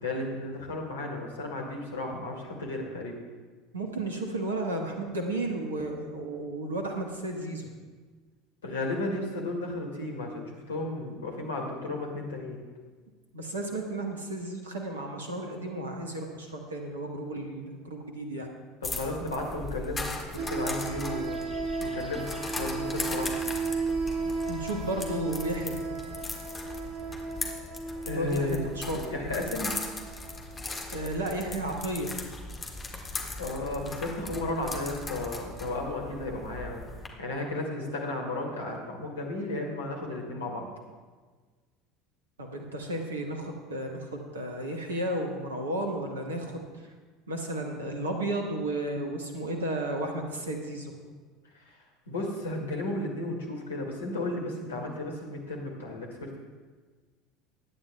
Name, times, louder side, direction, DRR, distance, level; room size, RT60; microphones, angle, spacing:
voice 1, 0.0-3.2 8.6-12.6 18.8-21.4 21.8-22.3 22.6-23.3 28.0-28.6 28.9-29.7 33.4-36.8 37.2-40.7 52.1-56.4, left 2 dB, 75° left, 0 dB, 2.1 m, -34 dB
voice 2, 3.7-7.7 13.3-18.5 24.5-25.8 28.1-29.0 30.9-32.1 42.4-46.9 47.3-50.9, right 1 dB, 75° right, 2 dB, 1.3 m, -33 dB
sound 1, 18.8-37.1, left 2 dB, 20° left, 1.7 m, -38 dB
sound 2, 20.4-30.8, right 4 dB, 50° right, 2.5 m, -35 dB
21.5 x 9.8 x 2.3 m, 1.4 s
figure-of-eight pair, 70°, 0 cm